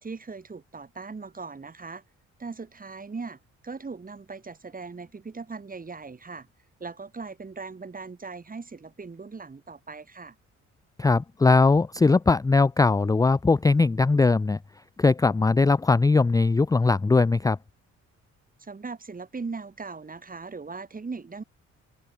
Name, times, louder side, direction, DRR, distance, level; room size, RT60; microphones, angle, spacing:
voice 1, 0.0-2.0 2.4-6.5 6.8-10.3 18.6-21.4, right 4 dB, 30° right, 4.3 m, -39 dB
voice 2, 11.0-14.6 15.0-17.6, left 3 dB, 10° left, 0.5 m, -20 dB
open air
cardioid pair, 90°, 30 cm